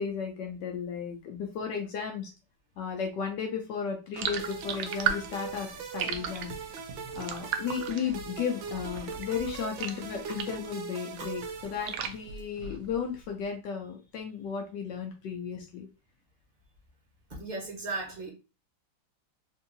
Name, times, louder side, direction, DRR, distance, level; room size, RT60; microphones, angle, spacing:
voice 1, 0.0-2.3 2.8-6.5 7.2-15.9, left 7 dB, 70° left, 1.1 m, -34 dB
sound 1, 4.1-10.7 11.1-13.1, right 8 dB, 90° right, 0.9 m, -36 dB
sound 2, 4.2-12.4, right 5 dB, 70° right, 1.3 m, -41 dB
voice 2, 17.3-18.3, right 3 dB, 30° right, 1.0 m, -36 dB
3.6 x 2.6 x 2.6 m
omnidirectional pair, 2.4 m